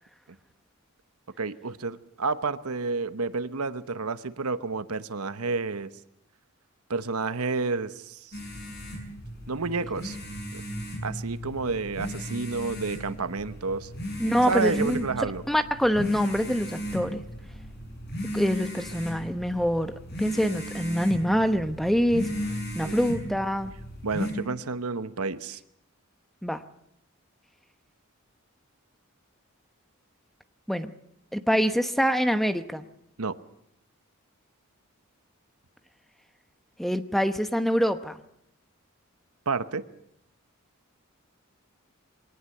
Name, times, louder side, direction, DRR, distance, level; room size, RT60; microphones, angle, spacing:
voice 1, 1.4-5.9 6.9-8.4 9.5-10.2 10.5-10.6 11.0-13.9 14.3-15.4 22.8-23.0 24.0-25.6 33.2-33.3 39.5-39.8, right 4 dB, 85° right, 12 dB, 1.0 m, -30 dB
sound 1, 8.3-24.3, equal, 50° left, 6.6 m, -36 dB
voice 2, 14.2-15.0 15.5-17.2 18.3-22.3 22.7-23.7 26.4-26.6 30.7-30.9 31.3-32.8 36.8-38.2, equal, ahead, 9 dB, 0.9 m, -25 dB
23.0 x 18.5 x 7.8 m, 0.75 s
head